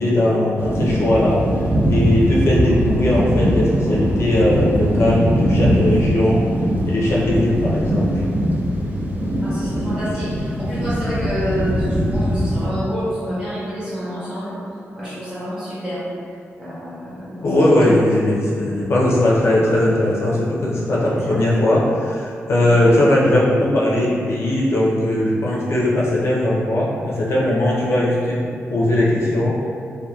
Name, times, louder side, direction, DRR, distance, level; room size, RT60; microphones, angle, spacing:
voice 1, 0.0-1.4 1.9-6.4 6.8-8.2 17.4-28.4 28.7-29.7, left 1 dB, 60° left, -6 dB, 0.4 m, -19 dB
sound 1, 0.6-12.7, equal, 35° right, 0.3 m, -21 dB
voice 2, 9.4-14.6 15.0-16.0 16.6-18.0 21.0-21.4, equal, 15° right, -11 dB, 1.0 m, -28 dB
2.7 x 2.2 x 2.2 m, 2.3 s
wide cardioid pair, 120°, 5 cm